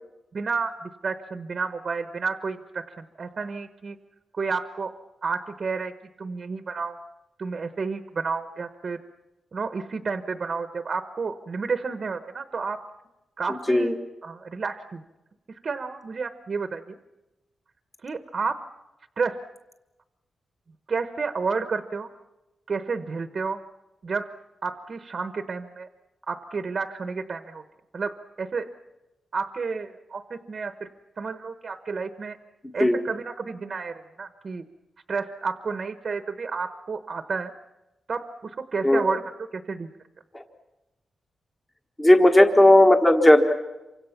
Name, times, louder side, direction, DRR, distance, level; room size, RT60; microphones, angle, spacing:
voice 1, 0.3-4.0 4.3-4.9 5.2-5.9 6.2-7.0 7.4-9.0 9.5-12.8 13.4-13.9 14.2-15.0 15.5-17.0 18.0-18.6 19.2-19.4 20.9-22.1 22.7-23.6 24.0-24.3 24.6-25.9 26.3-27.6 27.9-28.7 29.3-30.9 31.2-32.4 32.7-34.6 35.1-37.5 38.1-39.2 39.5-39.9, right 4 dB, 45° right, 9 dB, 1.0 m, -31 dB
voice 2, 42.0-43.5, left 1 dB, 15° left, 4 dB, 1.4 m, -16 dB
27.5 x 25.0 x 5.9 m, 1.0 s
wide cardioid pair, 145°, 0 cm